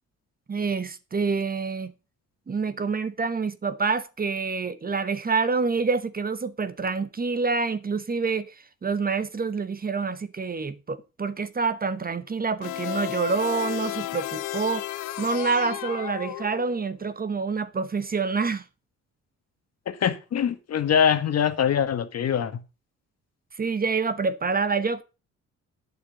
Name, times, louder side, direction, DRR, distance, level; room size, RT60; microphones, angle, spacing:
voice 1, 0.5-1.9 2.5-8.5 8.8-14.9 15.2-18.6 23.6-25.0, right 4 dB, 30° right, 1.1 m, -27 dB
sound 1, 12.6-16.9, left 16 dB, 85° left, 0.8 m, -33 dB
voice 2, 19.9-22.6, left 8 dB, 55° left, 1.5 m, -23 dB
9.3 x 7.0 x 6.6 m
cardioid pair, 90°, 30 cm